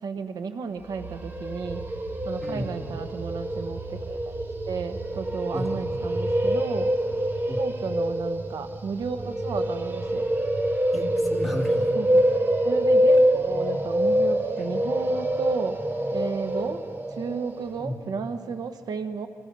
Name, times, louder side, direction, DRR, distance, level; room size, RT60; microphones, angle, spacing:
voice 1, 0.0-1.8 2.2-6.9 7.6-10.3 11.9-12.3 12.6-15.8 16.1-16.8 17.1-19.3, right 5 dB, 85° right, 8 dB, 1.1 m, -33 dB
sound 1, 0.8-17.8, equal, 35° right, 1.6 m, -26 dB
voice 2, 2.4-2.7 5.5-5.9 7.5-7.6 10.9-11.9 14.5-14.6 17.8-18.0, left 1 dB, ahead, -2 dB, 3.3 m, -33 dB
29.5 x 23.5 x 5.4 m, 2.4 s
wide cardioid pair, 130°, 7 cm